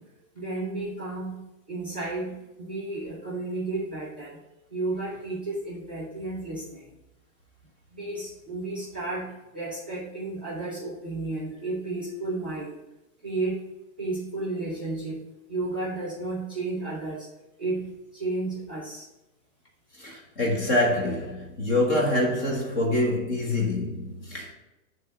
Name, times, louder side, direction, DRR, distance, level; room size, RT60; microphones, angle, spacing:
voice 1, 0.3-1.4 1.7-4.4 4.7-6.9 7.9-12.8 13.2-13.6 14.0-15.2 15.5-17.3 17.6-19.1, right 2 dB, 10° right, 0.4 m, -32 dB
voice 2, 20.0-24.5, left 1 dB, 20° left, 1.3 m, -25 dB
9.1 x 3.3 x 5.9 m
hypercardioid pair, 170°, 41 cm